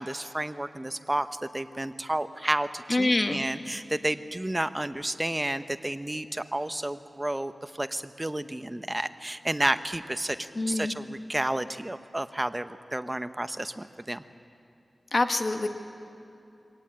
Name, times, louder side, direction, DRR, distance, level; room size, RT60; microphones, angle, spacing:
voice 1, 0.0-14.2, right 1 dB, 20° right, 11 dB, 0.8 m, -31 dB
voice 2, 2.9-3.4 10.6-10.9 15.1-15.7, left 2 dB, 45° left, 7 dB, 1.4 m, -25 dB
23.5 x 18.0 x 8.8 m, 2.7 s
wide cardioid pair, 75°, 0 cm